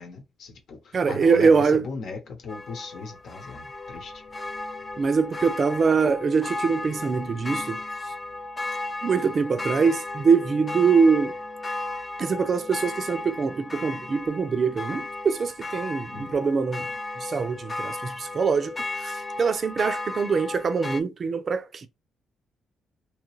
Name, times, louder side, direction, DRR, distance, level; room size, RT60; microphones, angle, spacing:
voice 1, 0.0-4.1 16.1-16.3, left 4 dB, 65° left, 1.0 m, -38 dB
voice 2, 0.9-1.8 5.0-7.8 9.0-11.3 12.2-18.7 19.0-21.9, right 5 dB, 45° right, 0.5 m, -23 dB
sound 1, 2.5-21.0, left 2 dB, 25° left, 0.5 m, -35 dB
2.9 x 2.3 x 3.1 m
cardioid pair, 90°, 0 cm